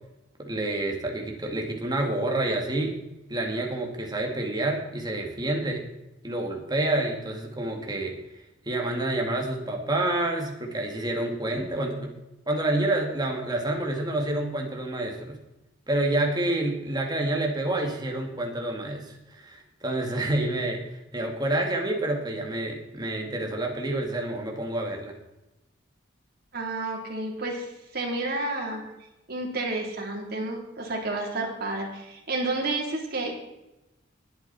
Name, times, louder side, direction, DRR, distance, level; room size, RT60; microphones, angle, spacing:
voice 1, 0.4-3.0 3.3-5.8 6.2-12.1 12.5-15.4 15.9-20.8 21.1-25.1, right 2 dB, 20° right, 1 dB, 2.4 m, -28 dB
voice 2, 26.5-27.7 27.9-28.8 29.3-33.4, right 2 dB, 55° right, 0 dB, 3.6 m, -30 dB
19.5 x 9.0 x 4.4 m, 0.96 s
head